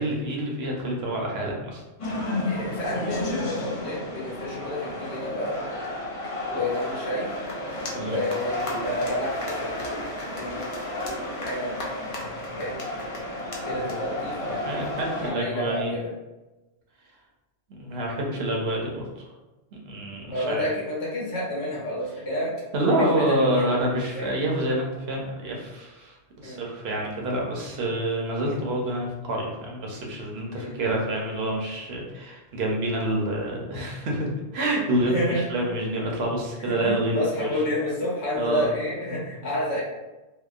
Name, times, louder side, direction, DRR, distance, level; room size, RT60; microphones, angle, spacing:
voice 1, 0.0-1.8 7.9-8.2 13.7-13.9 14.7-16.0 17.7-19.3 19.8-20.7 22.7-26.2 26.4-34.3 34.5-37.5 38.4-38.7 39.1-39.2, right 1 dB, 70° right, -1 dB, 0.8 m, -27 dB
sound 1, 2.0-15.3, left 1 dB, 55° left, 0.4 m, -32 dB
voice 2, 2.4-5.7 6.5-7.3 8.0-9.8 10.4-10.6 11.4-11.8 12.5-12.8 13.6-14.7 15.1-16.1 20.3-22.5 22.9-23.7 24.1-24.4 26.4-26.6 30.5-30.8 35.1-35.4 36.6-39.8, left 1 dB, 80° left, -6 dB, 1.2 m, -29 dB
2.8 x 2.0 x 2.3 m, 1.1 s
omnidirectional pair, 1.1 m